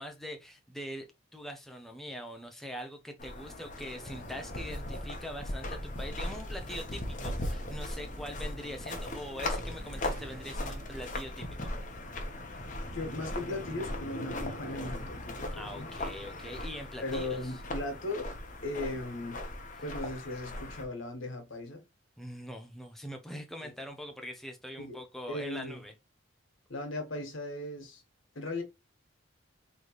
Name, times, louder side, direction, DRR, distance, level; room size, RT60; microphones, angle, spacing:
voice 1, 0.0-11.7 15.5-17.6 22.2-25.9, equal, ahead, 0.6 m, -43 dB
sound 1, 3.2-20.8, left 1 dB, 40° left, 0.9 m, -39 dB
sound 2, 5.4-11.0, left 1 dB, 30° right, 1.8 m, -46 dB
Motorcycle, 8.0-12.6, right 1 dB, 45° right, 1.5 m, -54 dB
voice 2, 12.9-15.9 17.0-18.3 18.6-19.4 19.8-21.8 23.6-23.7 24.8-25.0 25.3-25.8 26.7-28.0 28.3-28.6, left 2 dB, 80° left, 1.6 m, -37 dB
4.0 x 3.2 x 3.1 m
head